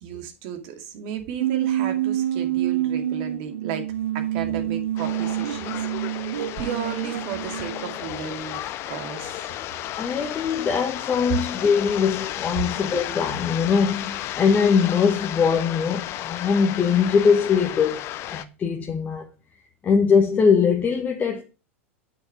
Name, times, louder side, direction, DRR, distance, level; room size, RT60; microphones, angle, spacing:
voice 1, 0.0-3.9 4.1-9.4, right 7 dB, 50° right, 2.4 m, -34 dB
sound 1, 1.4-8.1, right 12 dB, 65° right, 0.8 m, -27 dB
sound 2, 5.0-18.4, left 13 dB, 35° left, 0.8 m, -33 dB
voice 2, 10.0-19.3 19.8-21.4, left 6 dB, 20° left, 1.4 m, -21 dB
8.2 x 6.3 x 5.0 m
figure-of-eight pair, 90°, 7 cm